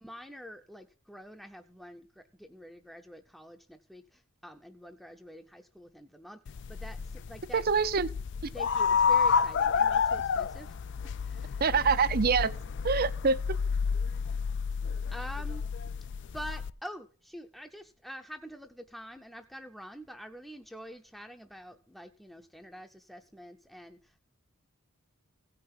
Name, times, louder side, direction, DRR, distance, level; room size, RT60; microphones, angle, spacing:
voice 1, 0.0-7.6 8.5-10.8 11.2-11.6 15.1-15.6 16.3-24.2, equal, ahead, 0.7 m, -46 dB
sound 1, 6.5-16.7, left 6 dB, 55° left, 0.4 m, -30 dB
voice 2, 7.5-8.1 11.6-12.5 12.8-13.4, right 5 dB, 45° right, 0.6 m, -25 dB
16.5 x 5.8 x 5.5 m
head